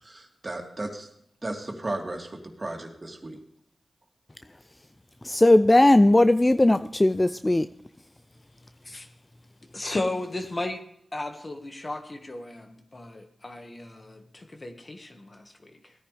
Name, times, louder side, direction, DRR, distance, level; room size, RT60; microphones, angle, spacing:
voice 1, 0.0-1.1 1.4-3.4, right 2 dB, 40° right, 2 dB, 2.7 m, -35 dB
voice 2, 5.2-7.7, left 1 dB, 25° left, 12 dB, 0.4 m, -18 dB
voice 3, 9.7-10.8 11.1-15.9, left 2 dB, 45° left, 5 dB, 1.7 m, -35 dB
16.5 x 9.9 x 3.4 m, 0.70 s
cardioid pair, 40°, 0 cm